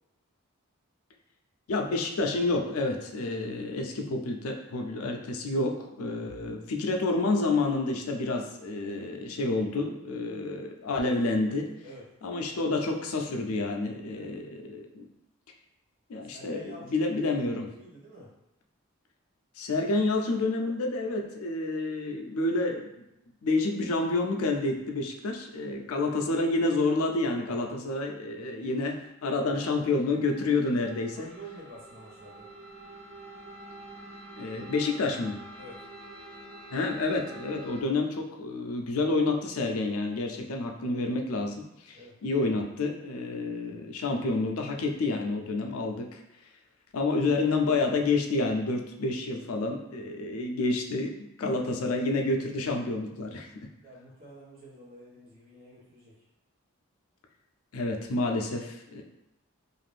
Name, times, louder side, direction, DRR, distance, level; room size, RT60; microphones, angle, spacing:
voice 1, 1.7-11.7 12.2-15.1 16.1-17.7 19.6-22.9 23.4-31.3 34.4-35.4 36.7-46.2 46.9-51.1 51.4-53.5 57.7-59.0, left 3 dB, 85° left, 3 dB, 0.4 m, -29 dB
voice 2, 16.3-17.2 17.8-18.3 25.7-25.9 31.1-32.5 35.5-35.8 41.9-42.2 50.0-50.1 53.8-56.1, right 1 dB, 40° right, -6 dB, 0.9 m, -48 dB
sound 1, 29.5-37.8, right 2 dB, 75° right, 0.9 m, -47 dB
2.5 x 2.5 x 3.3 m, 0.89 s
head